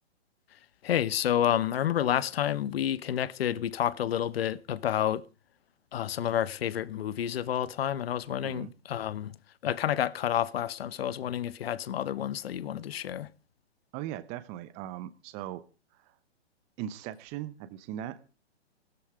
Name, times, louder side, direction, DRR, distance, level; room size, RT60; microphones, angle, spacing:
voice 1, 0.8-5.2 5.9-9.3 9.6-13.3, left 10 dB, 60° left, 1.0 m, -29 dB
voice 2, 8.4-8.7 13.9-15.6 16.0-16.1 16.8-18.2, right 12 dB, 20° right, 0.8 m, -39 dB
16.5 x 13.0 x 4.9 m
hypercardioid pair, 150°, 34 cm